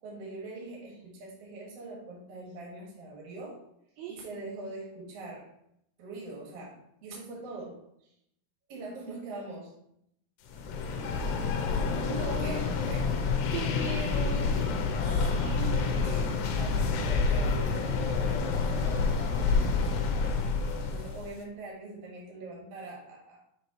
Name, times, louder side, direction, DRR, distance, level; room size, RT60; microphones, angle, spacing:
voice 1, 0.0-3.6 4.1-5.5 6.0-8.1 8.7-9.7 12.4-13.1 15.1-20.4 20.8-23.4, right 3 dB, 50° right, -3 dB, 2.2 m, -43 dB
sound 1, 10.5-21.3, left 4 dB, 85° left, 2.8 m, -28 dB
voice 2, 12.0-12.7 13.5-14.6, right 4 dB, 80° right, -2 dB, 2.3 m, -37 dB
7.3 x 4.5 x 3.0 m, 0.76 s
omnidirectional pair, 4.8 m